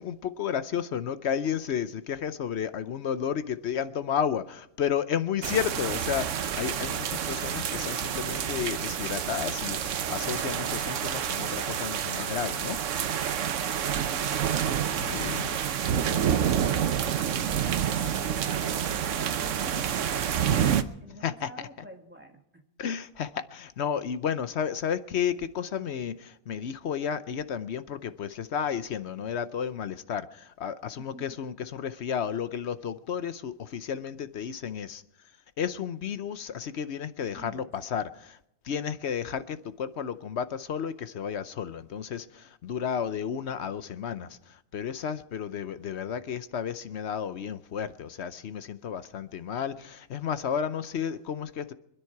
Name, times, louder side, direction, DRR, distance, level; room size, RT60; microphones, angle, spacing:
voice 1, 0.0-12.8 14.5-14.6 15.0-15.6 21.2-21.7 22.8-35.0 35.6-38.4 38.6-51.7, left 8 dB, 60° left, 0.9 m, -32 dB
sound 1, 5.4-20.8, right 9 dB, 65° right, 1.1 m, -28 dB
voice 2, 18.9-20.0 20.4-22.6 30.9-31.4 37.4-37.7, right 1 dB, 10° right, 1.8 m, -49 dB
26.0 x 10.0 x 4.6 m
omnidirectional pair, 1.5 m